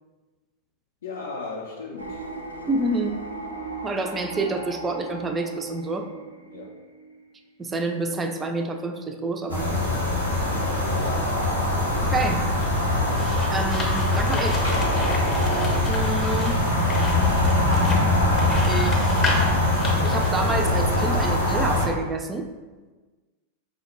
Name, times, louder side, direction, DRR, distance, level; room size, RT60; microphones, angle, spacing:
voice 1, 1.0-2.2 6.5-6.8 10.4-10.6, left 4 dB, 65° left, -2 dB, 0.4 m, -36 dB
sound 1, 2.0-8.3, right 3 dB, 80° right, 0.4 m, -38 dB
voice 2, 2.7-3.2 3.8-6.1 7.6-9.8 12.0-12.5 13.5-14.6 15.9-16.6 18.7-19.2 20.0-22.5, right 2 dB, 15° right, 6 dB, 0.3 m, -28 dB
sound 2, 9.5-21.9, left 1 dB, 90° left, 0.8 m, -22 dB
sound 3, 12.6-20.3, left 2 dB, 20° left, 0.7 m, -33 dB
4.9 x 2.1 x 3.1 m, 1.3 s
figure-of-eight pair, 90°, 0 cm